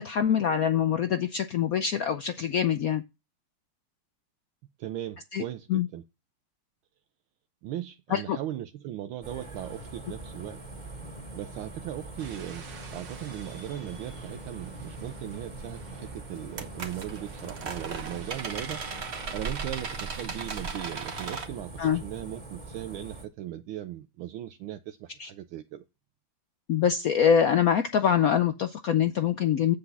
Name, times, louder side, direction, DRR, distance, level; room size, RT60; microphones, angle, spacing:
voice 1, 0.0-3.0 5.3-5.4 5.7-5.9 8.1-8.4 21.8-22.0 25.2-25.3 26.7-29.7, left 8 dB, 80° left, 0.8 m, -24 dB
voice 2, 4.8-6.0 7.6-10.6 11.3-18.8 19.3-25.8, right 12 dB, 80° right, 1.4 m, -38 dB
sound 1, 9.2-23.3, right 1 dB, 20° right, 2.0 m, -43 dB
sound 2, 12.2-19.9, right 5 dB, 60° right, 1.9 m, -50 dB
sound 3, 15.6-15.7 16.4-21.5, right 5 dB, 40° right, 1.1 m, -37 dB
7.9 x 7.2 x 4.0 m
omnidirectional pair, 2.3 m